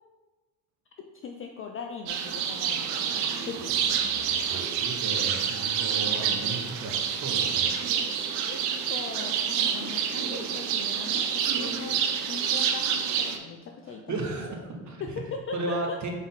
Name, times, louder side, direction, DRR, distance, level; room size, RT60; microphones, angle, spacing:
voice 1, 1.2-3.9 8.5-8.6 8.9-14.3 15.0-16.0, left 5 dB, 30° left, 2 dB, 0.3 m, -39 dB
sound 1, 2.1-13.4, right 8 dB, 60° right, 0.6 m, -28 dB
voice 2, 4.0-7.7 13.9-15.0 15.5-16.1, right 2 dB, 35° right, 2 dB, 1.0 m, -35 dB
3.8 x 3.6 x 3.7 m, 1.3 s
hypercardioid pair, 50°, 50 cm